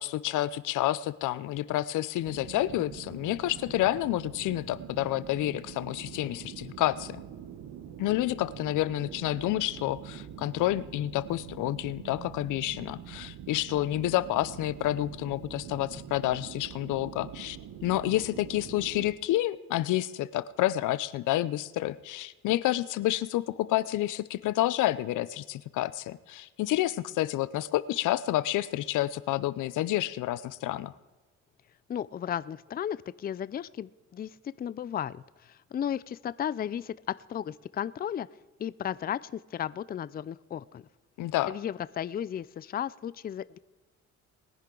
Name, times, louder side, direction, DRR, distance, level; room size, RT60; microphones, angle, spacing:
voice 1, 0.0-7.2 8.0-17.6 17.8-30.9 41.2-41.5, left 15 dB, 85° left, 17 dB, 0.6 m, -29 dB
sound 1, 2.2-19.2, right 9 dB, 70° right, 1.0 m, -44 dB
voice 2, 31.9-34.3 34.6-36.9 37.3-38.3 38.6-40.8 41.4-43.6, left 9 dB, 30° left, 18 dB, 0.4 m, -34 dB
21.0 x 10.5 x 3.9 m, 1.3 s
cardioid pair, 90°, 30 cm